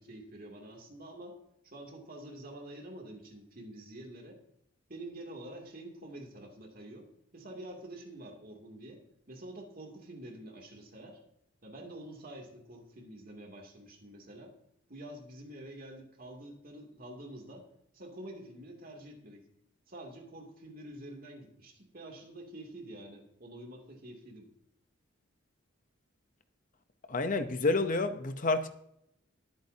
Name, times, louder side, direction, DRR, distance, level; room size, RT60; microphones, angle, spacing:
voice 1, 0.0-1.4 1.6-4.4 4.9-7.1 7.3-9.0 9.3-11.2 11.6-14.5 14.9-17.7 17.9-19.4 19.9-24.5, right 1 dB, 45° right, 2.7 m, -47 dB
voice 2, 27.1-28.7, left 3 dB, 40° left, 0.8 m, -29 dB
21.5 x 8.7 x 2.8 m
head